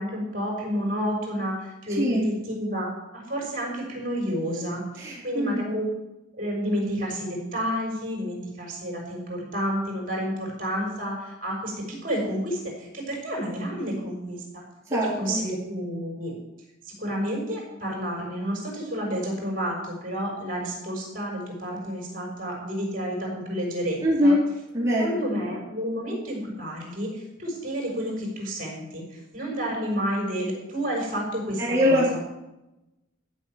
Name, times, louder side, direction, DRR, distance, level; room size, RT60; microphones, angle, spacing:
voice 1, 0.0-5.9 6.4-14.6 15.2-16.3 16.8-24.4 25.0-32.2, equal, 45° right, -2 dB, 5.5 m, -30 dB
voice 2, 2.0-2.3 5.0-5.6 14.9-15.4 24.0-24.4 24.7-25.2 31.6-32.2, equal, 15° right, -8 dB, 3.8 m, -23 dB
14.0 x 6.4 x 9.1 m, 0.94 s
head